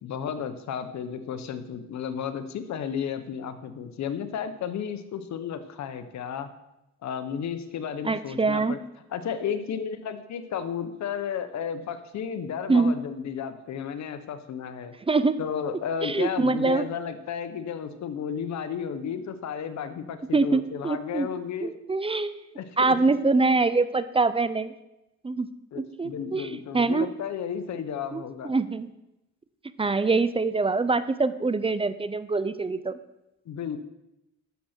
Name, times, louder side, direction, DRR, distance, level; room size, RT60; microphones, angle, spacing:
voice 1, 0.0-6.5 7.0-8.8 9.1-14.9 15.4-21.7 22.6-22.9 25.7-28.5 33.5-33.8, left 7 dB, 65° left, 10 dB, 1.1 m, -33 dB
voice 2, 8.0-8.8 12.7-12.9 15.1-15.4 16.0-16.9 20.3-21.3 21.6-22.4 22.8-24.7 25.2-25.5 25.8-27.1 28.1-28.9 29.8-33.0, right 3 dB, 20° right, 13 dB, 0.6 m, -24 dB
12.5 x 6.4 x 4.5 m, 0.92 s
cardioid pair, 90°, 30 cm